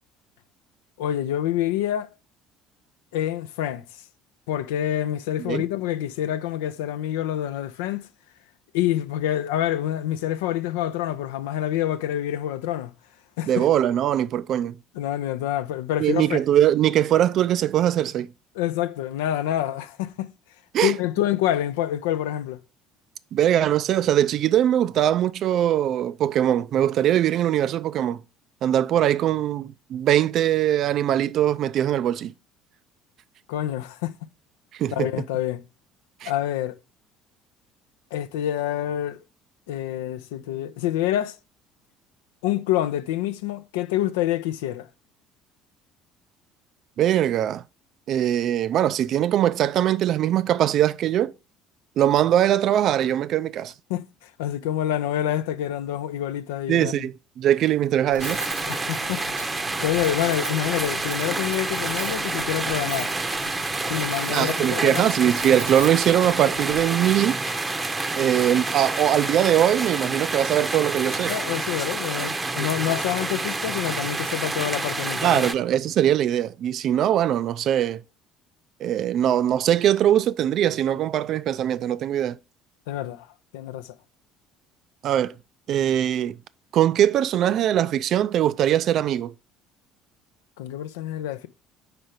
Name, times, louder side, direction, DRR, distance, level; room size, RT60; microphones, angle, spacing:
voice 1, 1.0-2.1 3.1-3.8 4.5-8.1 8.7-12.9 13.4-13.7 14.9-16.4 18.5-20.3 20.8-22.6 33.5-34.1 34.9-35.6 36.2-36.8 38.1-39.2 39.7-41.4 42.4-44.9 53.9-57.0 58.7-59.2 59.8-63.1 63.9-65.1 71.3-75.5 82.9-83.3 83.5-83.9 90.6-91.5, left 12 dB, 70° left, 0.4 m, -27 dB
voice 2, 13.4-14.8 16.0-18.3 20.7-20.9 23.3-28.2 28.6-32.3 34.7-35.1 36.2-36.3 47.0-47.6 48.1-51.3 52.0-53.7 56.7-58.4 64.3-67.4 68.2-71.4 75.2-78.0 78.8-82.4 85.0-85.3 85.7-86.4 86.7-89.3, right 11 dB, 50° right, 0.3 m, -21 dB
Cutlery silverware, 58.1-66.8, right 2 dB, 90° right, 0.6 m, -40 dB
sound 1, 58.2-75.5, right 3 dB, 20° right, 0.7 m, -28 dB
5.0 x 4.6 x 4.8 m
figure-of-eight pair, 55°, 0 cm